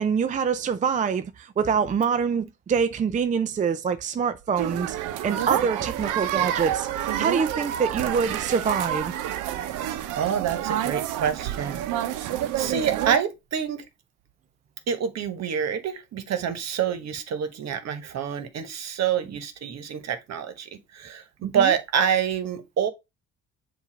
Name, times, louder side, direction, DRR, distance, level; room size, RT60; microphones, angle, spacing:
voice 1, 0.0-9.1 21.4-21.7, right 6 dB, 25° right, 0.5 m, -25 dB
sound 1, 4.6-13.2, right 11 dB, 80° right, 0.7 m, -28 dB
voice 2, 10.2-13.8 14.9-22.9, right 8 dB, 60° right, 1.2 m, -27 dB
7.2 x 2.7 x 5.0 m
cardioid pair, 90°, 30 cm